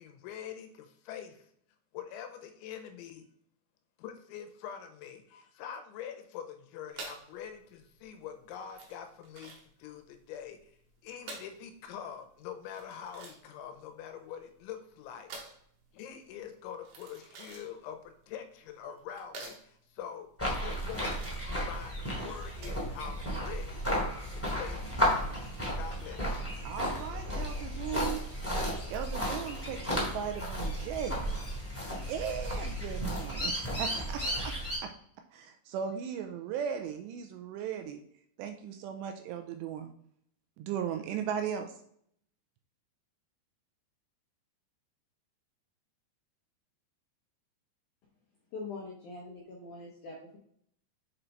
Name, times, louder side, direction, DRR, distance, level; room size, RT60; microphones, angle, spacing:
voice 1, 0.0-1.5 1.9-3.3 4.0-10.7 11.0-15.3 15.9-20.3 20.6-21.2 21.6-23.9 24.3-25.5 25.8-26.5, left 8 dB, 90° left, 7 dB, 3.2 m, -44 dB
sound 1, 6.9-23.0, right 3 dB, 60° right, 2.1 m, -50 dB
sound 2, 20.4-34.8, equal, 10° left, 0.9 m, -33 dB
voice 2, 26.6-28.2 28.9-31.2 32.1-34.5 34.8-34.9 35.3-38.0 38.4-39.9 40.6-41.7, right 8 dB, 85° right, 6 dB, 2.6 m, -37 dB
voice 3, 48.5-50.4, left 3 dB, 75° left, -3 dB, 1.8 m, -43 dB
7.4 x 4.5 x 3.9 m, 0.67 s
omnidirectional pair, 5.3 m